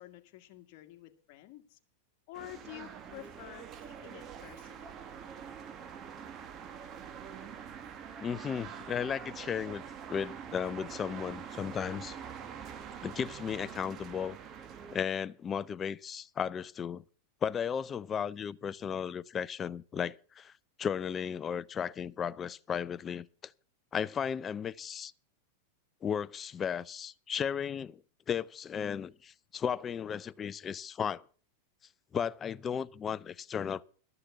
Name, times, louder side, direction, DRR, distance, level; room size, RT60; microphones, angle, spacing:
voice 1, 0.0-1.8 2.3-4.9, left 15 dB, 55° left, 1.7 m, -49 dB
sound 1, 2.3-15.0, right 7 dB, 35° right, 1.3 m, -45 dB
voice 2, 8.2-9.8 10.1-12.2 13.0-14.4 14.9-17.0 17.4-20.5 20.8-23.5 23.9-25.1 26.0-28.0 28.3-31.2 32.1-33.8, left 7 dB, 25° left, 0.5 m, -35 dB
13.0 x 6.9 x 8.1 m
hypercardioid pair, 125°, 0 cm